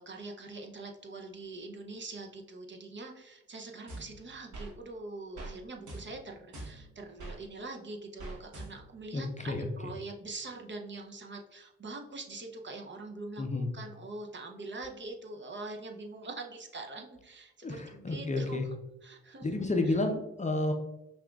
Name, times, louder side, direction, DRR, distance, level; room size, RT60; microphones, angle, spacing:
voice 1, 0.0-18.6 19.0-19.5, right 3 dB, 35° right, 3 dB, 0.6 m, -43 dB
sound 1, 3.9-4.7 5.4-5.6 5.9-7.4 8.2-9.0, right 2 dB, 55° right, 1.2 m, -44 dB
voice 2, 9.1-9.7 13.4-13.7 17.6-18.7 19.4-20.7, left 2 dB, 20° left, 4 dB, 0.6 m, -31 dB
5.5 x 2.3 x 2.3 m, 0.95 s
hypercardioid pair, 45°, 35 cm